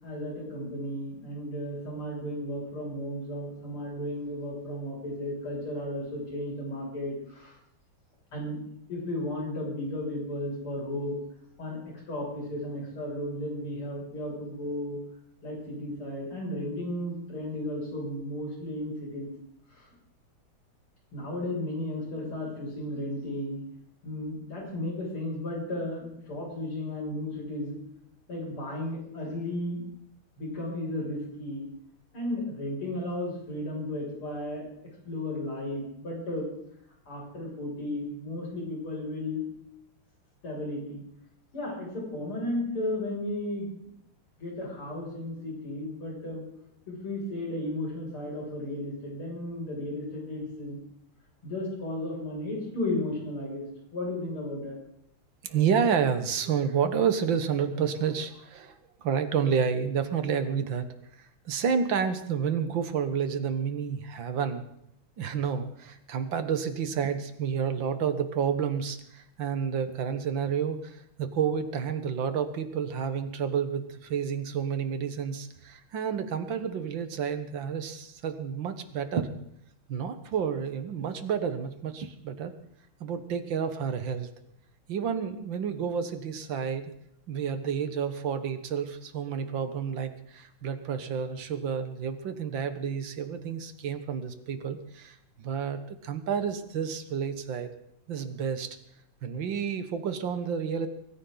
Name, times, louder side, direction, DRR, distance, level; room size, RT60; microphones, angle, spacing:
voice 1, 0.0-7.6 8.3-8.6 8.9-11.2 11.6-11.8 12.1-15.0 15.4-19.3 19.7-19.9 21.1-23.6 24.0-27.8 28.3-29.8 30.4-31.7 32.1-34.6 35.1-36.5 37.1-39.4 40.4-41.0 41.5-43.7 44.4-46.4 46.9-50.8 51.4-54.8, left 1 dB, 85° left, -3 dB, 7.4 m, -34 dB
voice 2, 55.4-60.9 61.2-64.7 65.2-79.3 79.9-82.6 83.0-84.3 84.9-86.9 87.3-97.7 98.1-98.8 99.2-100.9, right 7 dB, 65° right, 10 dB, 1.9 m, -30 dB
23.0 x 14.5 x 4.0 m, 0.73 s
omnidirectional pair, 2.3 m